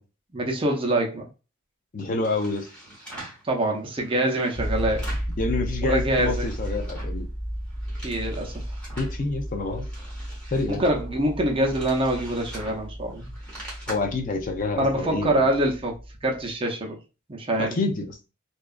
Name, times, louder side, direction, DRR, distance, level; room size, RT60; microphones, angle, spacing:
voice 1, 0.3-1.3 3.4-5.1 5.8-6.5 8.0-8.6 10.7-13.3 14.8-16.0 16.2-17.0 17.3-17.8, right 1 dB, 25° right, 0.5 m, -25 dB
voice 2, 1.9-2.7 5.4-7.3 9.0-9.9 10.5-10.8 13.9-15.4 17.6-18.1, left 3 dB, 40° left, 0.4 m, -27 dB
sound 1, 2.0-3.4 3.9-5.4 5.7-7.2 7.6-9.2 9.6-13.9, right 1 dB, 5° left, 1.0 m, -44 dB
sound 2, 4.6-16.5, equal, 25° left, 1.3 m, -34 dB
2.7 x 2.3 x 2.3 m
head